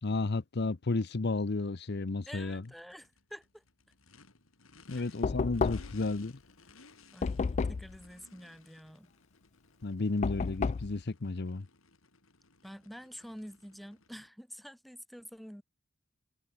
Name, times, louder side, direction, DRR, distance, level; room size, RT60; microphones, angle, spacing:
voice 1, 0.0-2.6 4.9-6.4 9.8-11.7, left 3 dB, 55° left, 0.7 m, -32 dB
Race car auto racing / Idling / Accelerating revving vroom, 2.2-14.3, left 4 dB, 80° left, 3.8 m, -60 dB
voice 2, 2.3-3.6 4.9-5.1 7.1-9.1 12.6-15.6, equal, ahead, 2.3 m, -48 dB
Knock, 5.2-6.1 7.2-8.0 10.2-10.9, left 5 dB, 35° left, 0.3 m, -31 dB
head